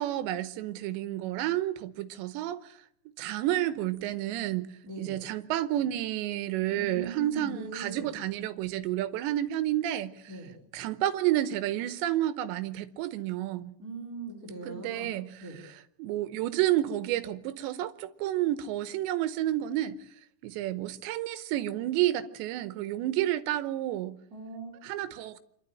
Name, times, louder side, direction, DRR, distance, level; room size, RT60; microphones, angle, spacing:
voice 1, 0.0-2.7 3.2-4.7 5.0-10.1 10.7-13.7 14.7-15.3 16.0-20.0 20.4-24.2 24.8-25.4, right 13 dB, 80° right, 3.2 m, -30 dB
voice 2, 4.8-5.2 6.7-8.1 10.3-10.5 13.8-15.1 15.4-15.6 24.3-24.7, right 3 dB, 20° right, 4.0 m, -40 dB
26.0 x 12.5 x 9.0 m
omnidirectional pair, 5.2 m